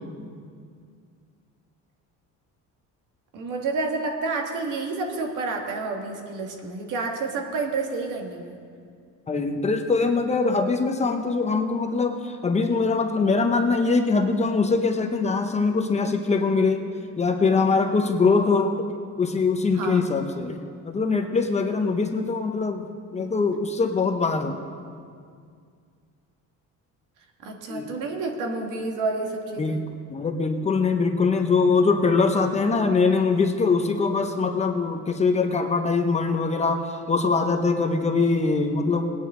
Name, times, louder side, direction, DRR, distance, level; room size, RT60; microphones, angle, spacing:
voice 1, 3.3-8.6 19.7-20.0 27.4-29.8, right 3 dB, 70° right, 2 dB, 1.8 m, -29 dB
voice 2, 9.3-16.8 17.2-18.7 19.2-20.6 20.8-22.9 23.1-24.6 27.7-27.9 29.5-29.8 30.1-39.1, left 4 dB, 20° left, 5 dB, 0.7 m, -22 dB
20.0 x 9.3 x 3.7 m, 2.2 s
cardioid pair, 145°, 32 cm